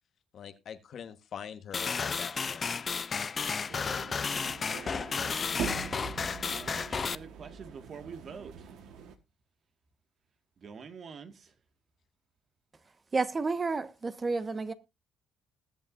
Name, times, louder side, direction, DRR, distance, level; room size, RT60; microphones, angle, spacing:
voice 1, 0.3-3.0, left 8 dB, 60° left, 1.2 m, -44 dB
sound 1, 1.7-7.2, left 5 dB, 40° left, 0.5 m, -33 dB
sound 2, 3.7-9.2, right 6 dB, 75° right, 1.3 m, -42 dB
voice 2, 6.4-8.7 10.6-11.5, right 6 dB, 55° right, 1.7 m, -46 dB
voice 3, 13.1-14.7, right 4 dB, 35° right, 1.2 m, -30 dB
20.0 x 7.2 x 2.5 m
supercardioid pair, 65°, 0 cm